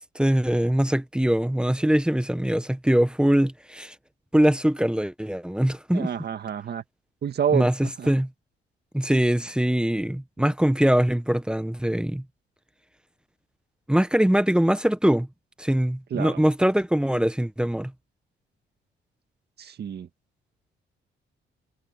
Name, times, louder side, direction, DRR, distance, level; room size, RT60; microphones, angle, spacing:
voice 1, 0.0-3.9 4.3-6.1 7.5-8.3 8.9-12.2 13.9-15.3 15.6-17.9, equal, 5° right, 1.0 m, -22 dB
voice 2, 5.9-6.8 7.2-8.1 16.1-16.4 19.6-20.1, right 8 dB, 55° right, 1.9 m, -28 dB
cardioid pair, 90°, 20 cm